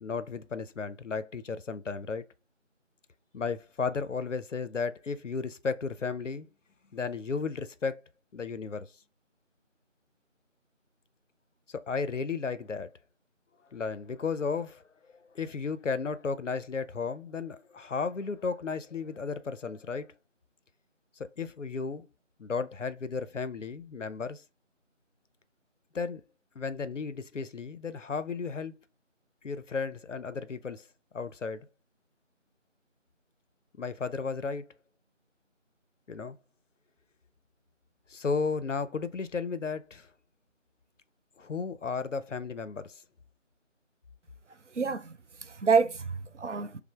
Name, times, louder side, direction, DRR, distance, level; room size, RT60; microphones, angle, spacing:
voice 1, 0.0-2.2 3.3-6.5 6.9-8.0 8.3-8.9 11.9-12.9 13.7-14.8 15.1-20.1 21.4-22.0 22.4-24.4 25.9-26.2 26.6-28.7 29.4-30.8 31.1-31.7 33.8-34.6 36.1-36.4 38.1-40.1 41.4-43.0, left 5 dB, 70° left, 0.5 m, -34 dB
voice 2, 44.7-46.8, right 5 dB, 65° right, 0.5 m, -28 dB
5.8 x 2.0 x 3.1 m
figure-of-eight pair, 175°, 38 cm